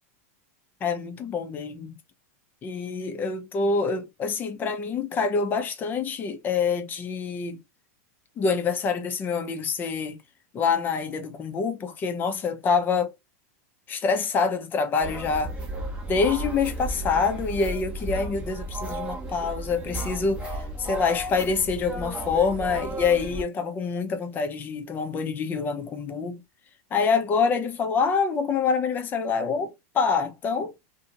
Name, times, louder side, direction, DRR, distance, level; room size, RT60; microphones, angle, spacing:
voice 1, 0.8-2.0 2.6-7.6 8.4-10.2 10.5-13.1 13.9-15.5 16.1-26.4 26.9-30.7, left 5 dB, 25° left, 0.7 m, -26 dB
sound 1, 15.0-23.4, right 1 dB, 10° right, 0.8 m, -34 dB
2.8 x 2.7 x 2.5 m
supercardioid pair, 145°, 8 cm